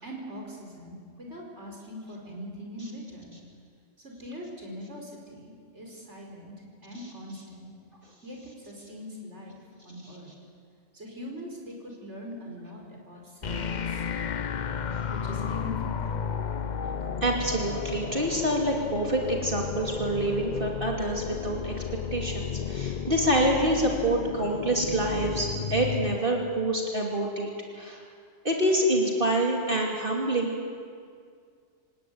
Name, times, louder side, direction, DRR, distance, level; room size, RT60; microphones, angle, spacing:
voice 1, 0.0-3.3 4.0-6.5 6.8-7.7 8.2-9.6 9.8-10.3 10.9-14.0 15.1-16.3, equal, 65° right, -1 dB, 5.3 m, -42 dB
sound 1, 13.4-26.2, left 6 dB, 45° left, 0.7 m, -33 dB
voice 2, 17.2-21.7 22.1-28.0 28.4-30.8, right 1 dB, 45° right, 0 dB, 2.9 m, -27 dB
27.0 x 17.0 x 9.5 m, 2.1 s
omnidirectional pair, 1.3 m